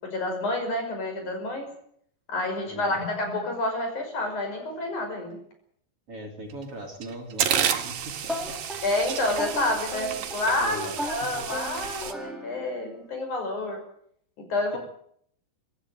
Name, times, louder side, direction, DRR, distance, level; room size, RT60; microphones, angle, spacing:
voice 1, 0.0-1.7 2.3-5.4 8.8-13.8 14.5-14.8, left 2 dB, 55° left, 4 dB, 7.1 m, -29 dB
voice 2, 2.6-3.0 6.1-8.5 9.6-9.7 10.6-11.0, right 1 dB, 40° right, 3 dB, 4.4 m, -40 dB
sound 1, 6.5-6.6 7.0-12.1, right 9 dB, 80° right, 3.5 m, -31 dB
sound 2, 8.3-12.9, equal, ahead, 4.0 m, -37 dB
25.5 x 13.0 x 9.1 m, 0.66 s
omnidirectional pair, 4.0 m